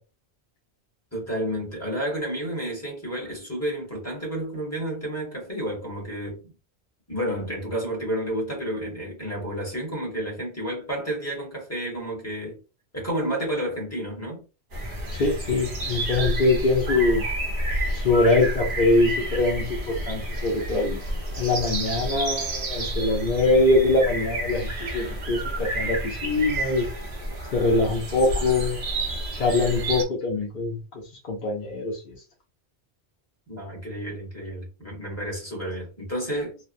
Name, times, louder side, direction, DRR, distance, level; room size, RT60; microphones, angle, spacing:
voice 1, 1.1-6.4 7.1-12.6 12.9-14.4 33.5-36.6, right 1 dB, 15° left, 1.3 m, -31 dB
sound 1, 14.7-30.0, right 1 dB, 50° right, 1.0 m, -30 dB
voice 2, 15.1-17.2 17.9-21.0 21.3-26.9 27.5-28.8 29.3-30.8 31.3-32.1, left 2 dB, 50° left, 0.8 m, -23 dB
3.1 x 2.1 x 2.5 m
omnidirectional pair, 1.1 m